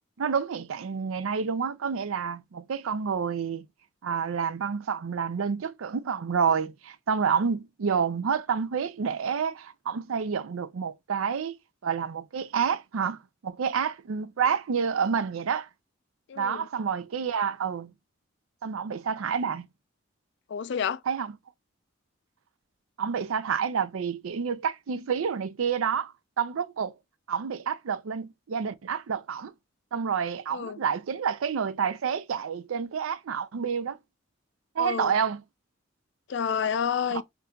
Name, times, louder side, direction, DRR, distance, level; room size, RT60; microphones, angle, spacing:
voice 1, 0.2-3.7 4.0-11.5 11.8-15.7 16.4-17.9 18.6-19.7 21.1-21.3 23.0-26.9 27.3-29.5 29.9-34.0 34.8-35.4 37.1-37.2, right 6 dB, 90° right, 0.5 m, -29 dB
voice 2, 16.3-16.7 20.5-21.0 30.5-30.8 34.8-35.1 36.3-37.2, left 7 dB, 60° left, 0.4 m, -29 dB
5.8 x 2.5 x 2.3 m
head